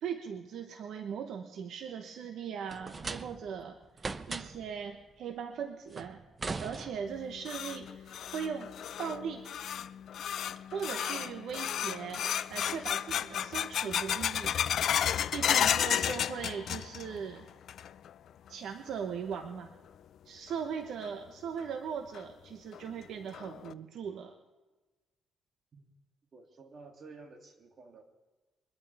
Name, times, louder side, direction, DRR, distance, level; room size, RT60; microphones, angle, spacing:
voice 1, 0.0-6.2 6.6-8.7 9.0-9.4 10.7-14.6 15.3-17.5 18.5-19.7 20.2-24.3, right 7 dB, 75° right, 6 dB, 1.0 m, -39 dB
sound 1, 2.7-3.6 4.0-4.7 5.9-7.3, right 4 dB, 30° right, 0.8 m, -39 dB
sound 2, 7.1-17.2 17.5-18.1 18.5-18.6 19.3-19.4 21.0-21.1 21.6-21.7 22.1-22.2 22.7-22.8 23.3-23.7, left 9 dB, 65° left, 0.5 m, -33 dB
voice 2, 26.3-28.1, right 3 dB, 45° right, 3 dB, 2.8 m, -52 dB
23.0 x 12.5 x 3.5 m, 1.2 s
cardioid pair, 90°, 0 cm